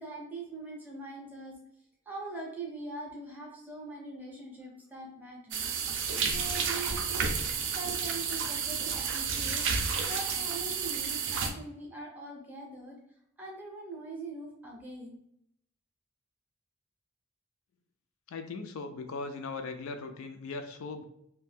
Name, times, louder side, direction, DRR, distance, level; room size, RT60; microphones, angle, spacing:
voice 1, 0.0-1.6 2.1-7.4 7.7-13.0 13.4-15.2, right 2 dB, 5° right, -2 dB, 0.6 m, -42 dB
sound 1, 5.5-11.5, right 6 dB, 55° right, 0.4 m, -31 dB
voice 2, 18.3-21.0, left 3 dB, 70° left, 7 dB, 0.3 m, -39 dB
2.5 x 2.2 x 3.2 m, 0.76 s
head